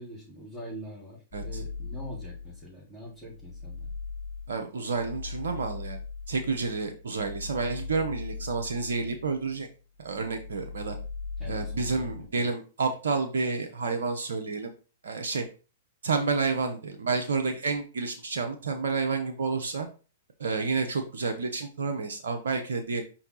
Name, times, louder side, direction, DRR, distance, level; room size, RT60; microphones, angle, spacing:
voice 1, 0.0-3.9 11.4-12.5, equal, 10° left, -11 dB, 3.7 m, -44 dB
sound 1, 1.3-2.7 3.1-9.7 10.0-12.3, left 4 dB, 30° left, 1.9 m, -39 dB
voice 2, 4.5-6.0 6.3-9.7 10.0-11.0 11.5-14.7 15.0-15.4 16.0-19.9 20.4-23.0, right 4 dB, 80° right, 5 dB, 1.0 m, -30 dB
5.5 x 4.4 x 4.1 m, 0.34 s
hypercardioid pair, 115°, 0 cm